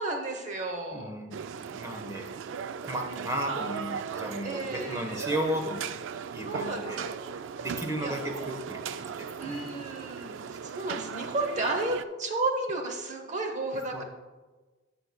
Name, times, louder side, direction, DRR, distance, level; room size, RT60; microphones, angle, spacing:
voice 1, 0.0-1.1 4.4-5.3 6.4-7.7 8.0-8.1 9.4-14.0, right 2 dB, 40° right, 3 dB, 0.8 m, -33 dB
voice 2, 0.9-2.3 2.8-5.9 6.3-7.0 7.6-9.7 13.9-14.0, equal, 15° right, 3 dB, 1.0 m, -34 dB
sound 1, 1.3-12.0, right 7 dB, 75° right, 0.3 m, -37 dB
16.0 x 5.9 x 2.2 m, 1.3 s
head